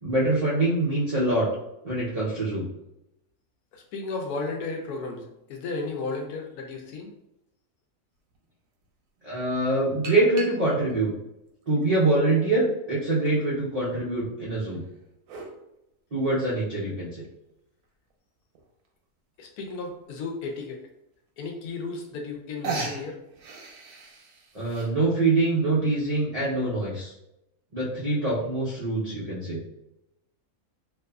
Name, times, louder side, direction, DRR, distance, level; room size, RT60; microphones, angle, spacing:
voice 1, 0.0-1.5 1.8-2.7 9.2-11.1 11.7-14.8 16.1-17.2 24.5-27.1 27.7-29.6, right 2 dB, 75° right, -7 dB, 0.3 m, -24 dB
voice 2, 3.7-7.1 19.4-20.8 21.4-23.2, left 3 dB, 85° left, 2 dB, 1.1 m, -34 dB
sound 1, 8.3-8.4 10.0-10.9 11.6-12.6 13.3-13.4 14.5-15.6 17.2-17.3 17.8-17.9 18.1-18.2 18.6-18.9 19.9-20.0 20.5-20.6 21.7-21.8 22.0-22.4 22.6-24.9, right 3 dB, 90° right, 1.1 m, -37 dB
2.6 x 2.4 x 2.2 m, 0.85 s
omnidirectional pair, 1.6 m